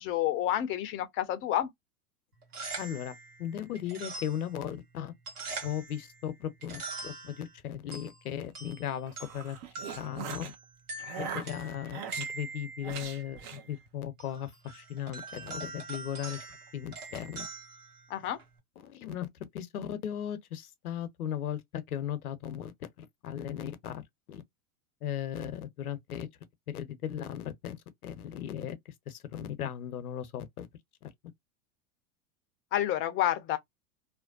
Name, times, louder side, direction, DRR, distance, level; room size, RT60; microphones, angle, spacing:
voice 1, 0.0-1.7 18.1-18.4 32.7-33.6, left 12 dB, 30° left, 0.5 m, -29 dB
sound 1, 2.3-18.6, right 3 dB, 80° right, 1.4 m, -44 dB
voice 2, 2.8-5.1 5.6-9.6 10.0-10.5 11.2-16.4 16.7-17.5 18.8-19.3 19.5-24.0 24.3-24.4 25.0-26.3 26.7-28.8 29.1-30.7, left 10 dB, 80° left, 0.7 m, -37 dB
sound 2, 8.9-10.5 11.0-12.3 12.8-13.6, right 8 dB, 45° right, 0.7 m, -41 dB
2.5 x 2.1 x 2.4 m
hypercardioid pair, 100°, 44 cm